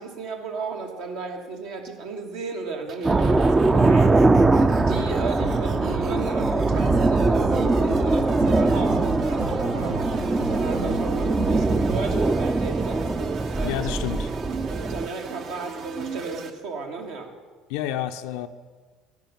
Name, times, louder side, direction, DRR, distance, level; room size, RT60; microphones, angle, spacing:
voice 1, 0.0-4.2 4.5-13.1 13.5-13.9 14.3-17.3, right 4 dB, 70° right, 3 dB, 1.2 m, -34 dB
sound 1, 2.9-16.5, right 6 dB, 55° right, 0.7 m, -37 dB
sound 2, 3.0-15.1, right 3 dB, 20° right, 0.4 m, -22 dB
sound 3, 3.6-12.2, right 3 dB, 90° right, 0.6 m, -36 dB
voice 2, 13.6-14.3 17.7-18.5, left 12 dB, 70° left, 8 dB, 0.4 m, -29 dB
10.5 x 4.9 x 6.9 m, 1.4 s
hypercardioid pair, 65°, 0 cm